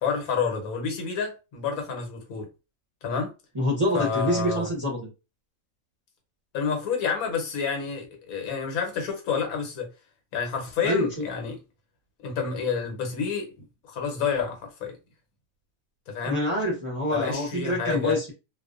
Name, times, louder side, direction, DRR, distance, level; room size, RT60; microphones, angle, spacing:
voice 1, 0.0-2.5 3.0-3.3 3.9-4.7 6.5-9.9 10.3-11.6 12.2-13.5 13.8-15.0 16.1-16.4 17.1-18.2, left 6 dB, 85° left, 1.2 m, -29 dB
voice 2, 3.5-5.1 10.8-11.1 16.3-18.3, left 1 dB, 30° right, 0.6 m, -26 dB
2.5 x 2.1 x 2.4 m
omnidirectional pair, 1.5 m